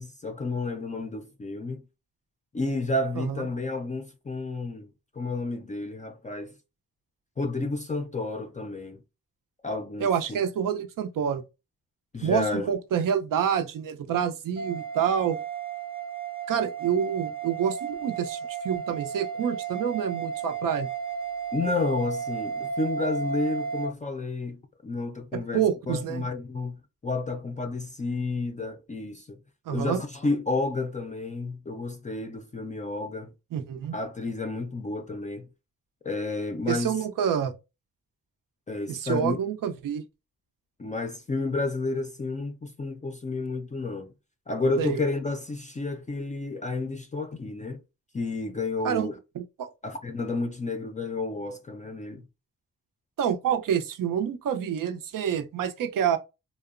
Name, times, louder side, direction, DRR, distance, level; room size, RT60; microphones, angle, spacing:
voice 1, 0.0-1.8 2.5-4.9 5.2-6.5 7.4-9.0 9.6-10.4 12.1-12.7 21.5-29.4 29.7-33.3 33.9-35.5 36.0-37.0 38.7-39.4 40.8-44.1 44.5-47.8 48.1-49.1 49.8-52.3, left 3 dB, 25° left, 0.3 m, -31 dB
voice 2, 3.2-3.5 10.0-11.4 12.2-15.4 16.5-20.9 25.3-26.2 29.7-30.0 33.5-34.0 36.7-37.5 38.9-40.0 44.8-45.0 48.8-49.1 49.3-49.7 53.2-56.2, right 8 dB, 80° right, 0.5 m, -27 dB
sound 1, 14.6-23.9, right 6 dB, 15° right, 0.6 m, -33 dB
2.8 x 2.0 x 2.3 m
wide cardioid pair, 105°, 32 cm